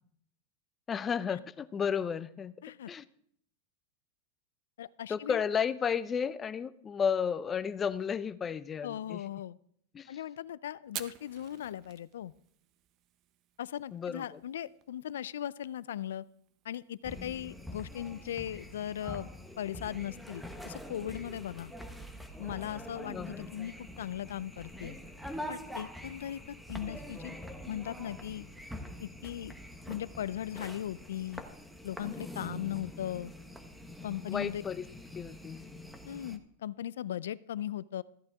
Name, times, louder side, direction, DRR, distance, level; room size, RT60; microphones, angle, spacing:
voice 1, 0.9-2.5 2.9-3.0 5.1-9.2 9.9-10.2 13.9-14.4 23.1-23.5 34.3-34.8 35.1-35.7, left 7 dB, 25° left, 15 dB, 0.6 m, -33 dB
voice 2, 4.8-5.4 8.8-9.6 10.1-12.3 13.6-16.2 16.6-19.3 19.6-21.7 22.4-25.0 25.5-26.4 26.7-27.4 27.7-28.5 29.0-29.6 29.9-31.4 31.8-33.3 34.0-34.6 36.1-38.0, left 11 dB, 80° left, 19 dB, 0.4 m, -38 dB
Fire, 10.8-20.0, right 11 dB, 45° right, 0.8 m, -52 dB
sound 1, 17.0-36.4, left 1 dB, ahead, 1.0 m, -45 dB
14.5 x 8.8 x 3.6 m, 0.65 s
hypercardioid pair, 115°, 0 cm